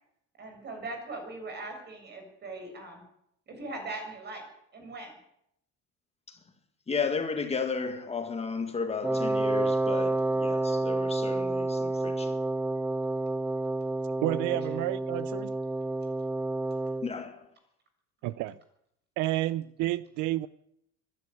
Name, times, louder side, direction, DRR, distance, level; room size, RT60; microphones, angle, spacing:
voice 1, 0.4-3.0 3.5-4.4 4.7-5.1, right 2 dB, 35° right, 7.1 m, -40 dB
voice 2, 6.9-12.4 17.0-17.5, left 5 dB, 20° left, 1.9 m, -33 dB
Wind instrument woodwind instrument, 9.0-17.1, right 2 dB, 5° right, 0.7 m, -29 dB
voice 3, 14.2-15.5 18.2-18.6 19.2-20.5, right 16 dB, 75° right, 0.8 m, -30 dB
24.0 x 11.5 x 9.7 m
cardioid pair, 150°, 30 cm